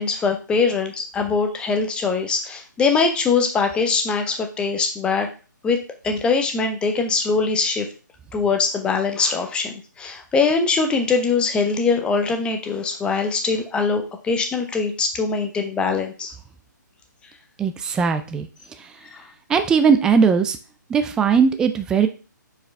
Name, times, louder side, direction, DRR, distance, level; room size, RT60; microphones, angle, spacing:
voice 1, 0.0-5.3 5.6-5.8 6.0-7.9 8.3-16.3 19.1-19.2, left 4 dB, 10° left, 4 dB, 0.7 m, -22 dB
voice 2, 17.6-18.5 19.5-20.6 20.9-22.1, right 6 dB, 5° right, 8 dB, 0.3 m, -18 dB
6.3 x 4.7 x 3.3 m, 0.35 s
figure-of-eight pair, 140°, 11 cm